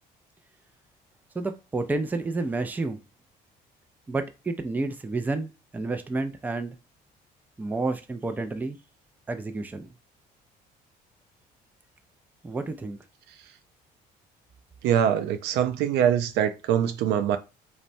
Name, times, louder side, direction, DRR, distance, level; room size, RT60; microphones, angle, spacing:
voice 1, 1.3-3.0 4.1-6.8 7.6-8.8 9.3-9.9 12.4-13.0, right 3 dB, 10° right, 0.3 m, -30 dB
voice 2, 14.8-17.4, right 9 dB, 85° right, 0.4 m, -23 dB
3.1 x 2.1 x 2.6 m
cardioid pair, 110°, 17 cm